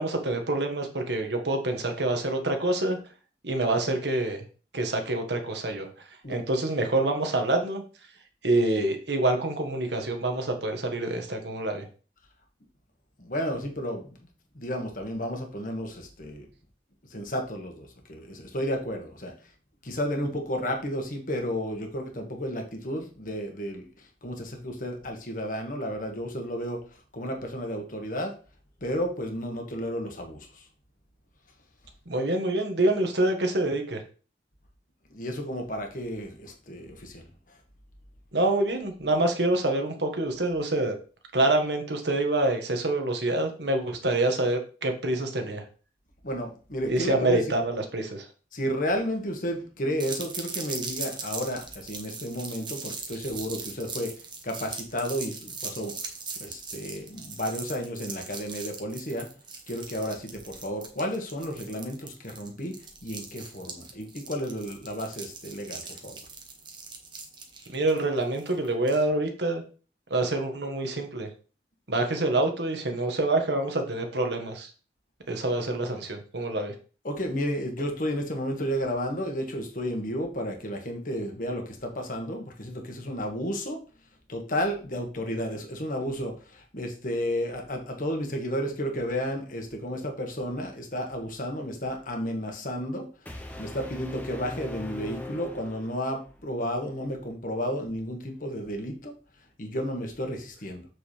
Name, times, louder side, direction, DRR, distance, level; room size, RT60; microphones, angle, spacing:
voice 1, 0.0-3.0 3.4-4.4 4.7-5.9 6.3-7.8 8.4-11.9 32.1-34.0 38.3-40.9 41.3-45.6 46.9-48.3 67.7-69.6 70.1-71.3 71.9-74.7 75.3-76.7, right 2 dB, 80° right, 4 dB, 1.6 m, -26 dB
voice 2, 13.2-14.2 14.5-16.5 17.1-19.3 19.8-23.9 24.2-26.8 27.1-28.3 28.8-30.5 35.1-37.3 46.2-47.4 48.5-54.1 54.4-55.9 56.4-59.3 59.7-62.8 63.0-66.2 77.0-83.8 84.3-93.1 93.6-99.1 99.6-100.9, equal, 50° left, 3 dB, 1.6 m, -32 dB
sound 1, 50.0-69.0, right 4 dB, 25° right, 1.1 m, -40 dB
sound 2, 93.3-96.3, left 1 dB, 10° left, 1.1 m, -40 dB
7.6 x 6.1 x 3.3 m, 0.37 s
head